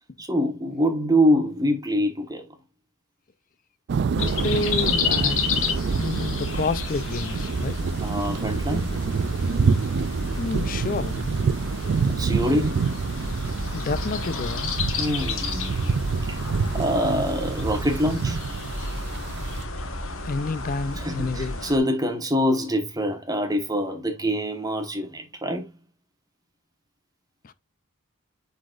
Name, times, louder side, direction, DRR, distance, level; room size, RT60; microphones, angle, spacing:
voice 1, 0.2-2.4 8.0-8.9 12.1-12.8 15.0-15.9 16.3-16.4 16.7-18.4 21.0-25.7, equal, 15° right, 1.3 m, -25 dB
sound 1, 3.9-19.6, right 5 dB, 50° right, 0.3 m, -27 dB
voice 2, 4.1-5.4 6.0-7.8 10.4-11.3 13.7-14.7 20.2-21.6 27.4-27.5, left 3 dB, 40° left, 0.4 m, -29 dB
sound 2, 4.2-21.8, left 3 dB, 65° left, 1.4 m, -31 dB
9.7 x 4.1 x 2.5 m
head